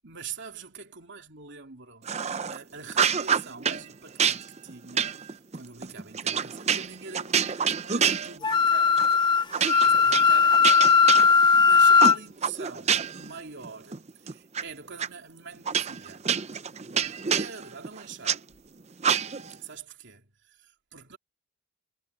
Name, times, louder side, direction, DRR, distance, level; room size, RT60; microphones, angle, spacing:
voice 1, 0.0-2.1 2.5-9.1 9.6-10.8 11.2-16.2 17.3-18.4 19.6-21.2, right 5 dB, 55° right, 3.1 m, -44 dB
sound 1, 2.1-2.6 2.9-3.8 4.2-8.7 9.0-9.2 9.5-11.6 12.0-13.3 13.6-14.6 15.0-15.1 15.7-18.4 19.0-19.6, right 7 dB, 30° right, 0.6 m, -27 dB
Wind instrument woodwind instrument, 8.4-12.2, left 5 dB, 20° left, 0.5 m, -18 dB
head